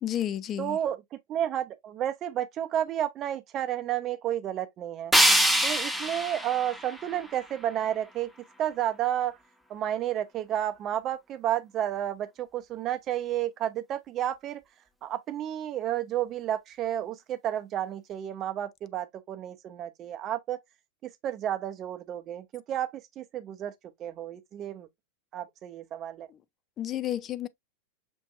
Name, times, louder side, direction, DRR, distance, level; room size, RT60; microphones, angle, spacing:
voice 1, 0.0-0.8 26.3-26.4 26.8-27.5, left 11 dB, 30° left, 0.4 m, -31 dB
voice 2, 0.6-5.1 5.6-8.3 8.6-9.4 9.7-14.6 15.0-20.6 21.0-23.7 24.0-24.9 25.3-26.3, right 11 dB, 35° right, 0.7 m, -31 dB
sound 1, 5.1-8.1, equal, ahead, 0.7 m, -25 dB
6.2 x 2.6 x 2.3 m
figure-of-eight pair, 90°, 0 cm